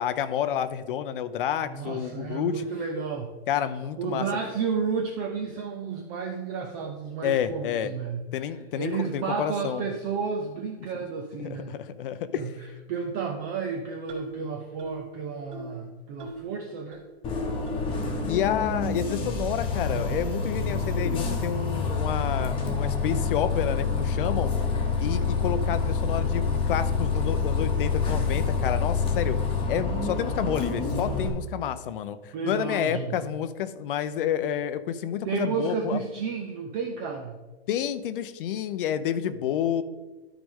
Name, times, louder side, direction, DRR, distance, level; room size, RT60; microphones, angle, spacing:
voice 1, 0.0-2.7 3.5-4.3 7.2-7.9 8.3-9.8 11.4-12.5 18.3-24.5 25.0-29.4 29.7-36.0 37.7-39.8, left 9 dB, 55° left, 13 dB, 0.7 m, -29 dB
voice 2, 1.6-3.3 4.0-8.2 8.8-11.8 12.3-12.5 12.9-17.0 32.3-33.2 35.2-37.4, right 5 dB, 15° right, 2 dB, 0.3 m, -31 dB
sound 1, 14.1-14.4 14.8-15.1 15.5-15.8 16.2-16.5 16.9-17.0 17.7-17.8 18.4-18.5 19.2-19.3 19.9-20.1, right 2 dB, 40° right, 2.8 m, -40 dB
Bus, 17.2-31.3, left 4 dB, 15° left, 1.0 m, -27 dB
12.0 x 5.0 x 3.7 m, 1.3 s
hypercardioid pair, 145°, 33 cm